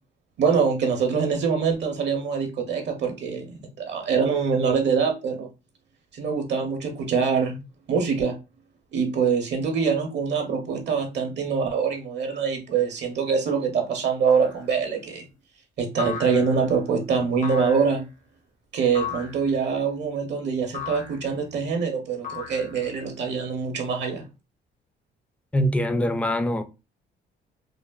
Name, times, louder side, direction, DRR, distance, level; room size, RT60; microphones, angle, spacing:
voice 1, 0.4-5.5 6.1-7.6 7.9-8.4 8.9-15.3 15.8-18.0 18.7-24.3, right 6 dB, 60° right, 0.6 m, -24 dB
sound 1, 14.3-14.7 16.0-16.8 17.4-18.0 18.9-19.5 20.7-21.3 22.2-23.0, left 6 dB, 40° left, 0.6 m, -35 dB
voice 2, 25.5-26.6, equal, 5° left, 0.3 m, -23 dB
3.2 x 2.0 x 2.2 m
cardioid pair, 90°, 20 cm